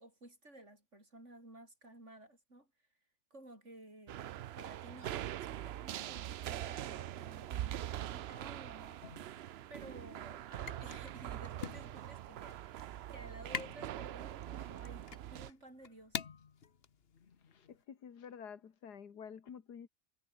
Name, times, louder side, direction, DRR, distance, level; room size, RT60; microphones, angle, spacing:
voice 1, 0.0-2.7 3.3-9.4 9.7-16.2, right 1 dB, 45° right, 7.6 m, -55 dB
sound 1, 4.1-15.5, right 12 dB, 85° right, 0.5 m, -43 dB
sound 2, 9.0-17.8, left 6 dB, 40° left, 1.3 m, -48 dB
voice 2, 17.5-19.9, left 7 dB, 90° left, 2.2 m, -50 dB
omnidirectional pair, 1.7 m